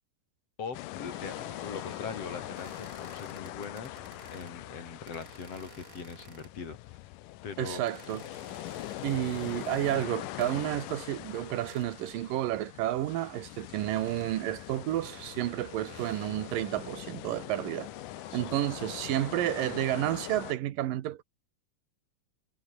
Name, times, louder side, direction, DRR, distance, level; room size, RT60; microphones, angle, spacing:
voice 1, 0.6-4.0 4.3-7.0 7.4-7.8 8.8-9.1 18.3-18.6, left 5 dB, 45° left, 4.6 m, -41 dB
sound 1, 0.7-20.5, left 17 dB, 75° left, 2.2 m, -42 dB
sound 2, 1.1-4.6 5.1-6.7 7.9-10.1 10.4-11.9 13.6-14.3 15.0-16.8 17.4-18.9, right 3 dB, 25° right, 3.8 m, -53 dB
voice 2, 7.6-8.2 9.0-17.9 18.3-21.2, right 13 dB, 75° right, 2.8 m, -31 dB
omnidirectional pair, 4.1 m